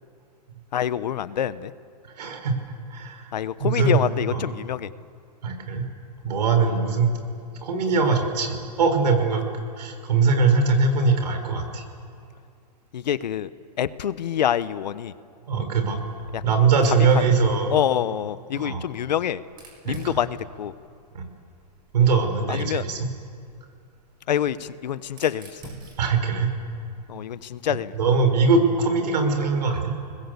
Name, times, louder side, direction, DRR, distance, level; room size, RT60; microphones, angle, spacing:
voice 1, 0.7-1.7 3.3-4.9 12.9-13.5 13.8-15.1 16.3-16.4 16.9-17.3 17.7-19.4 19.8-20.7 22.5-22.8 24.3-25.6 27.1-27.9, left 10 dB, 85° left, 15 dB, 1.1 m, -26 dB
voice 2, 2.2-2.6 2.9-3.3 3.6-4.0 4.3-4.4 5.4-5.9 6.2-7.1 7.5-9.4 9.8-11.8 15.5-16.0 16.4-17.8 18.6-18.8 19.9-20.2 21.1-21.2 21.9-23.1 26.0-26.5 28.0-29.9, right 4 dB, 80° right, 6 dB, 5.5 m, -21 dB
Fire, 19.4-22.2 23.4-27.6, right 2 dB, 20° right, 6.6 m, -47 dB
29.0 x 20.5 x 8.3 m, 2.4 s
hypercardioid pair, 150°, 21 cm